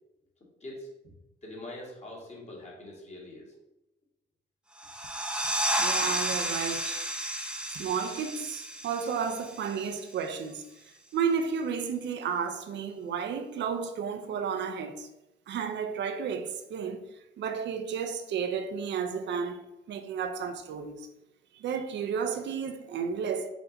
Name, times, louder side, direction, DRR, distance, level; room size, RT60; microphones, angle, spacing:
voice 1, 1.4-3.6, left 1 dB, 35° left, 1.5 m, -43 dB
sound 1, 4.8-10.1, right 1 dB, 5° right, 0.6 m, -32 dB
voice 2, 5.8-7.0 7.7-10.6 11.1-15.1 15.5-17.0 17.4-19.6 19.9-21.1 21.5-23.5, right 6 dB, 65° right, 0.6 m, -32 dB
4.3 x 2.7 x 3.9 m
cardioid pair, 90°, 20 cm